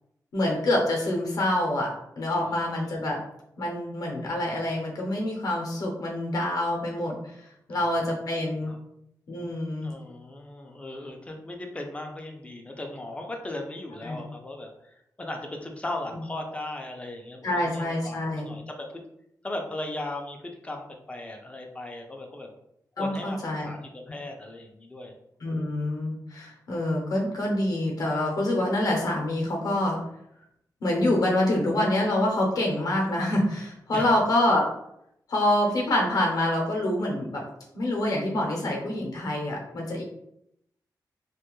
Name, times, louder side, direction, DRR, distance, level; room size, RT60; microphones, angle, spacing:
voice 1, 0.3-3.2 3.6-7.3 7.7-8.7 9.3-9.9 14.0-14.2 17.4-18.5 23.0-23.7 25.4-30.0 30.8-34.7 35.3-37.4 37.7-40.0, left 1 dB, 55° left, -1 dB, 0.6 m, -26 dB
voice 2, 2.3-2.6 2.9-3.0 7.7-7.9 8.7-8.8 9.8-19.0 19.4-22.5 23.0-25.1 33.9-34.1, left 1 dB, 15° left, 3 dB, 0.3 m, -37 dB
2.4 x 2.2 x 2.9 m, 0.77 s
wide cardioid pair, 165°, 7 cm